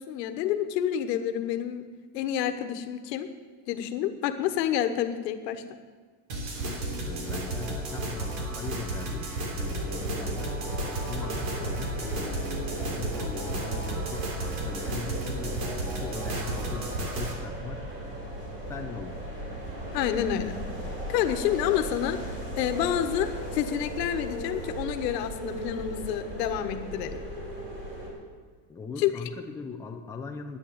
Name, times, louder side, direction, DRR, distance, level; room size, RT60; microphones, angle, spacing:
voice 1, 0.0-1.8 2.1-3.3 3.7-5.6 19.9-20.5 21.1-22.2 22.6-27.2 29.0-29.1, left 10 dB, 90° left, 9 dB, 1.3 m, -28 dB
sound 1, 6.3-17.3, right 2 dB, 70° right, 3.5 m, -33 dB
voice 2, 6.8-12.5 12.8-17.8 18.7-19.2 28.7-30.6, left 4 dB, 5° left, 2 dB, 0.6 m, -40 dB
sound 2, 9.6-28.1, right 1 dB, 25° right, 4.1 m, -37 dB
10.5 x 9.9 x 8.7 m, 1.6 s
supercardioid pair, 160°, 48 cm